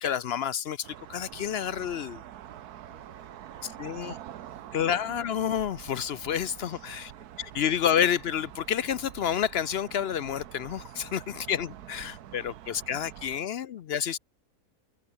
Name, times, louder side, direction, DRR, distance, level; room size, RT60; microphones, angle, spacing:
voice 1, 0.0-2.2 3.8-4.1 4.7-7.1 7.6-12.4 12.9-14.2, left 9 dB, 65° left, 0.6 m, -29 dB
sound 1, 0.8-13.4, right 11 dB, 85° right, 1.4 m, -46 dB
voice 2, 2.3-5.6 6.8-7.8 11.2-11.5 14.0-14.2, right 2 dB, 65° right, 8.4 m, -62 dB
omnidirectional pair, 1.6 m